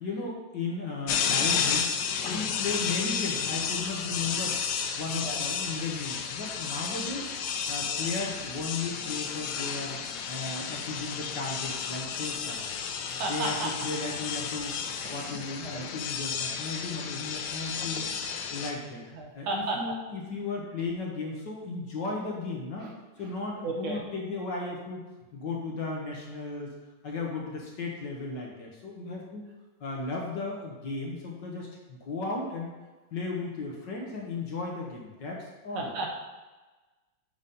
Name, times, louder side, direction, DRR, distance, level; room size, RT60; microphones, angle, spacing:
voice 1, 0.0-1.9 2.3-4.6 4.9-7.3 7.7-10.0 10.3-12.6 13.3-14.8 15.1-18.1 18.5-19.0 19.3-22.9 23.2-25.0 25.3-26.7 27.0-29.5 29.8-32.7 33.1-35.9, left 3 dB, 60° left, -1 dB, 1.6 m, -35 dB
sound 1, 1.1-18.7, left 7 dB, 75° left, 1.0 m, -32 dB
voice 2, 5.1-5.4 7.8-8.1 13.2-13.7 15.0-15.9 19.1-19.8 22.8-22.9 23.6-24.0 35.8-36.2, right 2 dB, 70° right, 0 dB, 1.9 m, -34 dB
7.1 x 4.0 x 5.3 m, 1.2 s
omnidirectional pair, 2.4 m